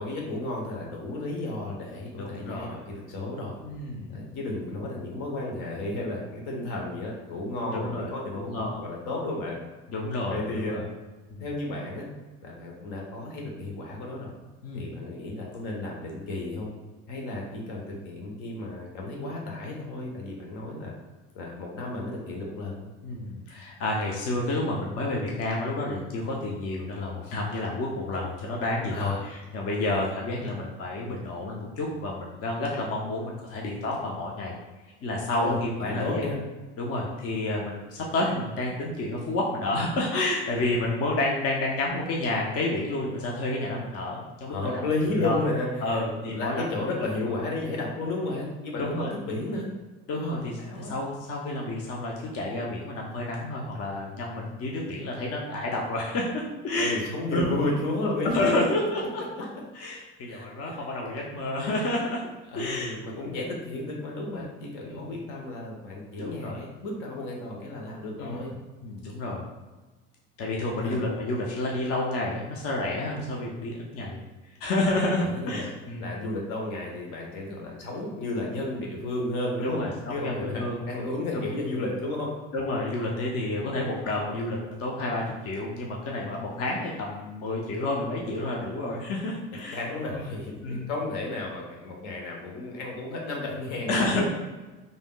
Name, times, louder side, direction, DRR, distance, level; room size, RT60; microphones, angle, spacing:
voice 1, 0.0-3.6 4.1-9.6 10.3-10.8 11.4-12.1 12.4-14.3 14.7-16.7 17.1-20.9 21.3-22.9 28.9-29.2 35.4-36.4 44.5-49.7 50.1-50.9 56.7-58.7 59.2-59.3 60.3-60.8 62.5-68.5 70.8-71.0 75.0-75.7 76.0-79.8 80.1-82.3 89.7-94.2, left 2 dB, 65° left, -1 dB, 0.9 m, -33 dB
voice 2, 2.2-2.9 3.6-4.3 7.7-8.8 9.9-10.8 11.3-11.4 14.6-14.9 23.0-34.5 35.0-36.3 36.8-45.4 45.8-46.7 47.0-47.1 48.8-49.1 50.1-57.0 57.3-57.6 58.2-59.2 59.7-62.2 62.6-63.4 64.3-64.6 64.9-65.1 66.2-66.6 68.2-68.4 68.8-69.4 70.4-74.2 74.6-76.3 79.6-80.8 81.3-81.4 82.5-89.8 90.1-90.3 90.6-90.9 93.9-94.2, left 2 dB, 45° left, -2 dB, 0.6 m, -30 dB
3.3 x 2.6 x 2.2 m, 1.2 s
supercardioid pair, 80°, 34 cm